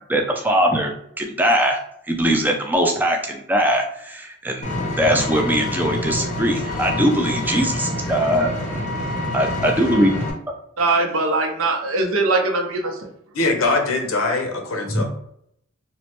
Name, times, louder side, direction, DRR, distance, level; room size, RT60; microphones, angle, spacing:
voice 1, 0.1-1.8 2.1-8.5 9.3-10.1 14.9-15.0, equal, 10° right, 2 dB, 0.3 m, -21 dB
Vehicle, 4.6-10.3, left 1 dB, 35° left, 0.6 m, -26 dB
voice 2, 10.8-13.1, right 3 dB, 75° right, 2 dB, 0.6 m, -21 dB
voice 3, 13.3-15.0, left 3 dB, 70° left, 3 dB, 0.6 m, -22 dB
3.0 x 2.1 x 2.9 m, 0.72 s
head